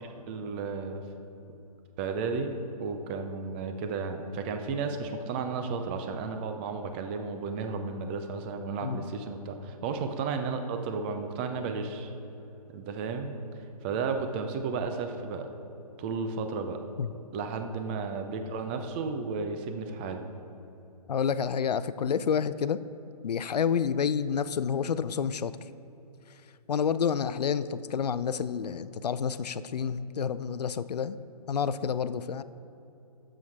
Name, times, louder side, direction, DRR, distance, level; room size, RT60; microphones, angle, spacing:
voice 1, 0.3-1.0 2.0-2.5 2.8-12.1 12.7-13.3 13.8-15.5 16.0-16.8 17.3-20.2, right 4 dB, 15° right, 6 dB, 0.4 m, -33 dB
voice 2, 21.1-22.8 23.2-25.5 26.7-31.2 31.5-32.4, left 7 dB, 80° left, 15 dB, 0.5 m, -29 dB
9.6 x 7.6 x 4.7 m, 2.9 s
hypercardioid pair, 150°, 20 cm